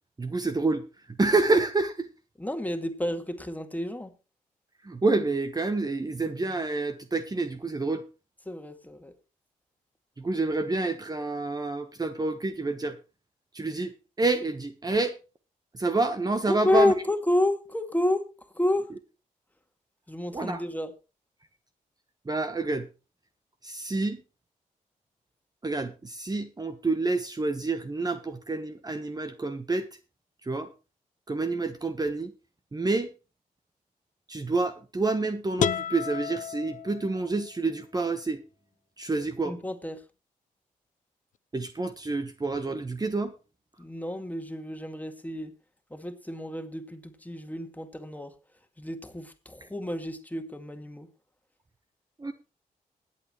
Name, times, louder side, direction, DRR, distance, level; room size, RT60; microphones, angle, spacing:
voice 1, 0.2-0.9 1.2-2.1 4.8-8.0 10.2-13.0 13.5-15.2 15.7-16.9 20.3-20.6 22.2-22.9 23.6-24.2 25.6-29.9 30.4-30.7 31.3-32.3 32.7-33.1 34.3-38.4 39.0-39.5 41.5-43.3 52.2-52.3, right 3 dB, 25° right, 8 dB, 1.1 m, -28 dB
voice 2, 2.4-4.1 8.5-9.1 16.5-18.3 18.5-18.9 20.1-20.9 39.4-40.0 43.8-45.5 45.9-48.3 48.8-51.1, left 1 dB, 10° left, 7 dB, 2.1 m, -29 dB
sound 1, 35.6-37.5, left 9 dB, 60° left, 0.5 m, -31 dB
20.5 x 8.5 x 3.1 m, 0.31 s
cardioid pair, 65°, 15 cm